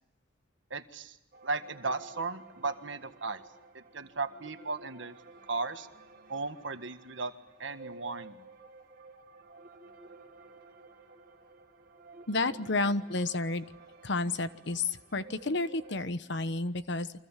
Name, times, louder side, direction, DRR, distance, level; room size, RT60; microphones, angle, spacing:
voice 1, 0.7-1.1 1.4-3.4 3.7-5.2 5.5-5.9 6.3-7.3 7.6-8.4, right 3 dB, 65° right, 9 dB, 1.6 m, -36 dB
sound 1, 1.3-16.1, right 3 dB, 50° right, 2.5 m, -53 dB
voice 2, 12.3-13.7 14.0-17.1, left 3 dB, 65° left, 12 dB, 1.2 m, -31 dB
29.5 x 24.5 x 7.5 m, 0.83 s
head